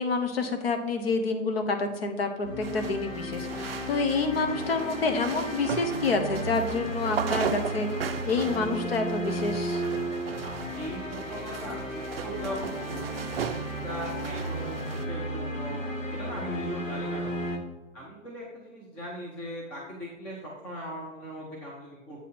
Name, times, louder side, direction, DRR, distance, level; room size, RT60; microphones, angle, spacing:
voice 1, 0.0-7.9 8.3-9.8, left 3 dB, 50° left, 5 dB, 1.1 m, -28 dB
sound 1, 2.4-17.6, equal, 75° left, 1.4 m, -34 dB
sound 2, 2.6-15.0, right 7 dB, 50° right, 0.4 m, -37 dB
voice 2, 10.4-13.2 13.7-15.8 16.1-17.5 17.9-22.3, equal, 5° left, -5 dB, 0.4 m, -39 dB
8.1 x 4.2 x 4.3 m, 1.2 s
figure-of-eight pair, 115°, 38 cm